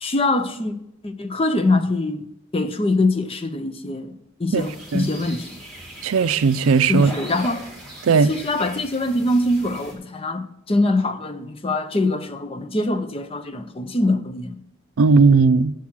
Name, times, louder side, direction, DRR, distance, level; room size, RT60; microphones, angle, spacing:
voice 1, 0.0-0.7 1.0-2.3 2.5-4.1 4.4-5.5 6.9-7.6 8.3-14.6, left 2 dB, 25° left, 0.5 m, -23 dB
sound 1, 4.6-9.9, equal, ahead, 2.4 m, -39 dB
voice 2, 6.0-7.1 8.0-8.3 15.0-15.7, right 5 dB, 85° right, 0.4 m, -16 dB
7.3 x 6.1 x 7.2 m
head